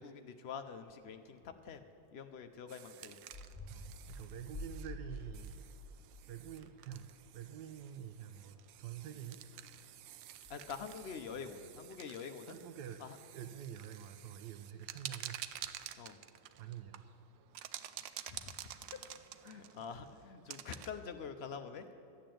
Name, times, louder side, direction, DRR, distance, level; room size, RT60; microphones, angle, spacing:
voice 1, 0.0-1.8 2.1-3.2 10.5-12.6 13.0-13.2 16.0-16.2 18.3-18.5 18.9-19.0 19.4-21.8, left 6 dB, 75° left, 7 dB, 0.5 m, -46 dB
sound 1, 1.4-1.7 3.3-7.4 7.7-8.0 8.7-8.9 10.4-11.6, left 1 dB, 15° left, 1.2 m, -49 dB
sound 2, 2.7-20.9, right 12 dB, 90° right, 1.3 m, -51 dB
voice 2, 3.7-5.6 6.3-9.4 12.5-13.0 13.3-15.4 16.6-17.0 17.6-17.7 19.4-19.6 20.4-20.6, right 9 dB, 70° right, 8 dB, 1.2 m, -47 dB
13.0 x 8.7 x 7.7 m, 2.7 s
omnidirectional pair, 1.9 m